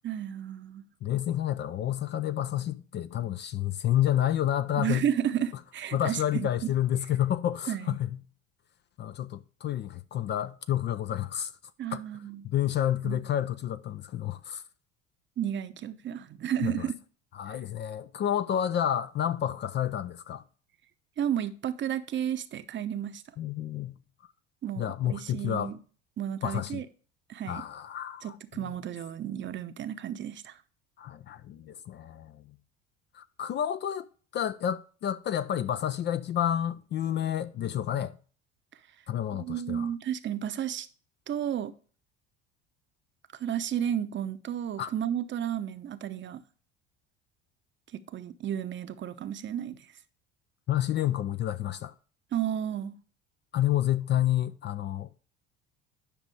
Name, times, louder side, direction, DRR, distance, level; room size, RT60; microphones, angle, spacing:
voice 1, 0.0-0.8 4.8-6.5 7.7-8.0 11.8-12.5 13.0-13.2 15.4-16.9 17.5-17.6 21.2-23.2 24.6-25.8 26.2-26.9 27.3-27.6 28.2-30.6 39.3-40.9 41.3-41.7 43.4-46.4 47.9-49.8 52.3-53.0, right 10 dB, 35° right, 0.8 m, -32 dB
voice 2, 1.0-5.1 5.9-8.2 9.0-11.5 11.9-12.0 12.4-14.6 16.6-16.9 17.3-20.4 23.4-24.0 24.8-25.7 26.4-26.8 27.5-28.6 31.0-32.4 33.1-34.0 34.3-38.2 39.1-39.9 44.8-44.9 50.7-51.9 53.5-55.2, left 11 dB, 35° left, 0.5 m, -29 dB
10.0 x 6.1 x 3.2 m
figure-of-eight pair, 65°, 33 cm